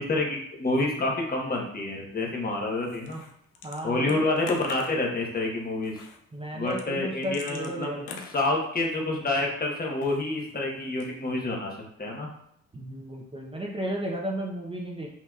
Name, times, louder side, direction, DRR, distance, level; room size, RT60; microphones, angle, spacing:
voice 1, 0.0-3.2 3.8-5.9 6.5-8.0 8.3-11.7 12.0-12.3, left 2 dB, 30° left, -1 dB, 1.0 m, -28 dB
sound 1, 2.8-3.8 4.1-5.1 5.8-6.2 6.7-9.1 9.9-10.5 10.9-11.3, left 5 dB, 90° left, 0.6 m, -43 dB
voice 2, 3.6-4.3 6.3-8.2 12.7-15.1, right 1 dB, 20° right, -2 dB, 0.7 m, -34 dB
5.6 x 2.9 x 2.4 m, 0.69 s
cardioid pair, 90°, 30 cm